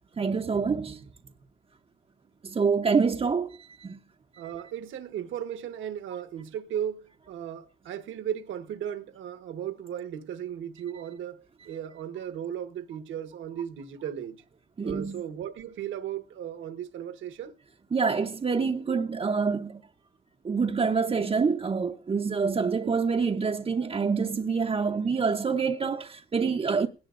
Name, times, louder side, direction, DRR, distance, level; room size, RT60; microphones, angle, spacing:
voice 1, 0.2-1.0 2.4-4.0 14.8-15.2 17.9-19.8 20.4-26.9, right 5 dB, 30° right, 0.8 m, -26 dB
voice 2, 4.4-14.4 14.8-17.5, right 9 dB, 75° right, 1.3 m, -36 dB
19.5 x 17.5 x 2.5 m
cardioid pair, 90°, 20 cm